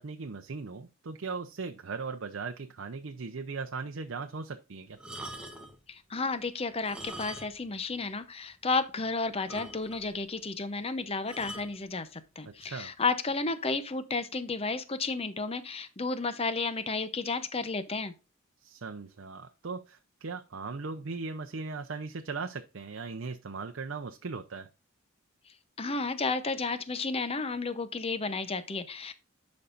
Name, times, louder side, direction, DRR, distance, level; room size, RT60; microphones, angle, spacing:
voice 1, 0.0-5.0 12.5-12.9 18.6-24.7, right 4 dB, 60° right, 0.6 m, -38 dB
sound 1, 5.0-5.8 6.7-7.7 8.0-8.1 8.7-8.8 9.0-9.1 9.5-10.1 11.3-11.7 12.6-12.8, right 1 dB, 5° right, 1.0 m, -43 dB
voice 2, 5.9-18.1 25.8-29.1, left 3 dB, 25° left, 0.7 m, -32 dB
11.0 x 5.3 x 2.5 m
head